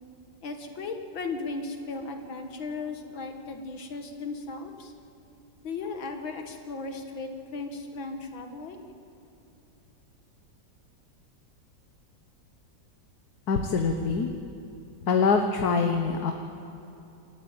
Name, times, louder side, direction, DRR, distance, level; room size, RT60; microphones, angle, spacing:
voice 1, 0.4-4.9 5.6-8.8, left 3 dB, 90° left, 5 dB, 2.5 m, -36 dB
voice 2, 13.5-14.3 15.1-16.3, left 5 dB, 55° left, 4 dB, 1.6 m, -24 dB
27.5 x 14.0 x 9.1 m, 2.9 s
omnidirectional pair, 2.1 m